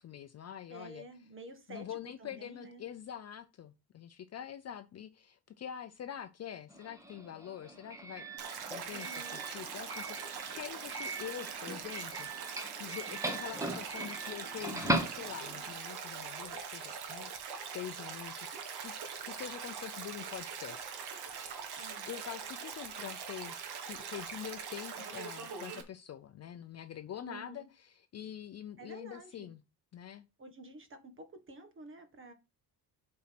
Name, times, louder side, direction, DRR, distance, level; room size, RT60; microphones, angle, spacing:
voice 1, 0.0-1.0 1.7-8.3 8.6-17.3 17.7-21.2 21.7-23.5 23.9-29.6 29.9-30.3, left 10 dB, 40° left, 0.5 m, -45 dB
voice 2, 0.7-2.8 8.9-9.4 21.8-22.1 27.2-27.7 28.8-29.5 30.4-32.3, right 2 dB, 30° right, 1.6 m, -50 dB
Doorbell, 6.7-15.7, right 2 dB, 10° right, 1.3 m, -39 dB
Stream, 8.4-25.8, right 6 dB, 65° right, 1.8 m, -42 dB
7.3 x 4.4 x 5.9 m
cardioid pair, 140°, 41 cm